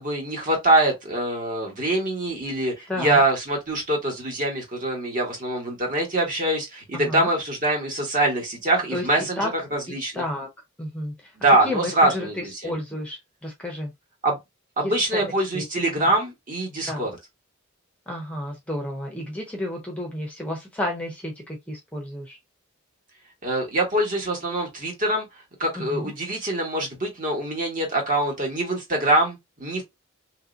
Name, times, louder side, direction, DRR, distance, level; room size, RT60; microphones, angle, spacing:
voice 1, 0.0-10.2 11.4-12.7 14.2-14.4 14.8-17.1 23.4-25.3 25.6-29.8, right 1 dB, 40° right, 1.3 m, -24 dB
voice 2, 2.9-3.2 6.9-7.3 8.9-9.5 10.1-10.5 10.8-11.3 11.6-13.9 14.8-14.9 15.2-16.1 16.9-17.1 18.1-22.4 25.8-26.1, left 1 dB, 5° left, 0.6 m, -32 dB
3.1 x 2.7 x 2.5 m
head